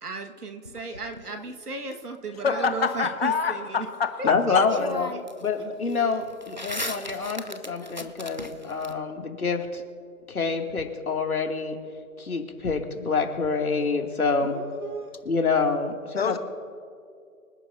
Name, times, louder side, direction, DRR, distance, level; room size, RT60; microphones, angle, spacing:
voice 1, 0.0-3.9 4.2-4.8 5.1-5.2 7.1-7.3 14.4-15.1, right 3 dB, 85° right, 5 dB, 1.8 m, -35 dB
sound 1, 0.6-1.9 4.2-4.3 4.7-5.5 5.8-8.9, left 1 dB, 35° right, 0.4 m, -37 dB
voice 2, 2.4-4.7 16.2-16.4, left 6 dB, 40° left, 8 dB, 1.4 m, -26 dB
voice 3, 4.2-5.1 5.4-9.8 10.3-11.8 12.2-14.6 15.3-16.4, left 4 dB, 70° left, 2 dB, 2.6 m, -26 dB
25.5 x 10.5 x 2.7 m, 2.3 s
figure-of-eight pair, 160°, 45 cm